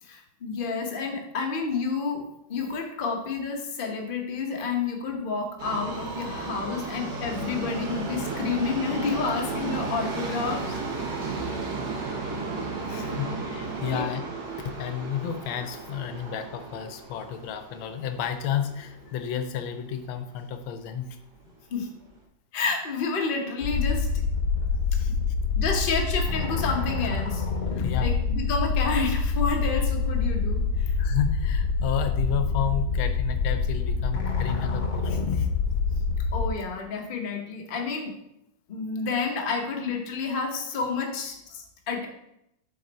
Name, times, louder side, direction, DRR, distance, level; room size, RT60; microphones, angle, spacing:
voice 1, 0.0-2.2 2.5-11.2 12.9-13.2 13.8-14.0 21.7-21.9 22.5-24.1 25.6-27.4 27.7-31.0 36.3-38.1 38.7-42.1, left 4 dB, 40° left, 1 dB, 0.8 m, -30 dB
Subway metro underground, 5.6-19.7 20.0-20.1 20.9-21.0 21.3-21.4 22.1-22.2, right 3 dB, 60° right, 1.5 m, -34 dB
voice 2, 12.9-14.2 14.6-21.1 24.5-25.1 27.8-28.1 31.0-35.5, left 9 dB, 90° left, 8 dB, 1.5 m, -32 dB
sound 1, 23.6-36.5, left 4 dB, 60° left, 1.2 m, -26 dB
6.5 x 4.3 x 4.1 m, 0.82 s
omnidirectional pair, 2.2 m